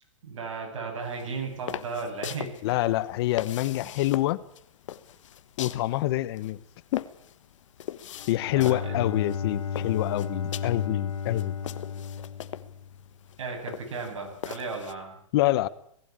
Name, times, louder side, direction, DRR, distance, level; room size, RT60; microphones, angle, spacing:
voice 1, 0.2-2.8 8.5-9.1 13.4-15.2, right 4 dB, 65° right, 2 dB, 7.8 m, -35 dB
sound 1, 1.0-14.9, left 11 dB, 65° left, 1.3 m, -42 dB
voice 2, 2.6-4.4 5.6-6.6 6.9-7.1 8.3-11.5 15.3-15.7, left 16 dB, 50° left, 18 dB, 1.0 m, -26 dB
Bowed string instrument, 8.2-13.2, left 6 dB, 90° left, 2.1 m, -33 dB
19.0 x 15.5 x 8.7 m, 0.69 s
hypercardioid pair, 130°, 17 cm